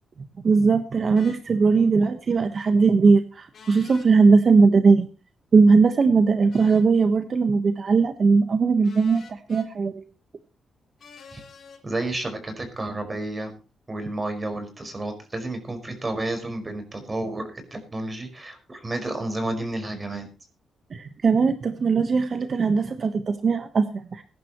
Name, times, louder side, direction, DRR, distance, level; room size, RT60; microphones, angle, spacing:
voice 1, 0.4-5.1 5.5-10.0 20.9-24.2, right 4 dB, 45° right, 8 dB, 1.2 m, -19 dB
sound 1, 1.2-1.4 3.5-4.1 6.5-6.9 8.8-9.7 11.0-11.8, left 5 dB, 55° left, 3.8 m, -47 dB
voice 2, 11.8-13.5 13.9-20.3, right 2 dB, 25° right, 6 dB, 5.1 m, -31 dB
21.5 x 11.0 x 3.1 m, 0.32 s
cardioid pair, 115°, 0 cm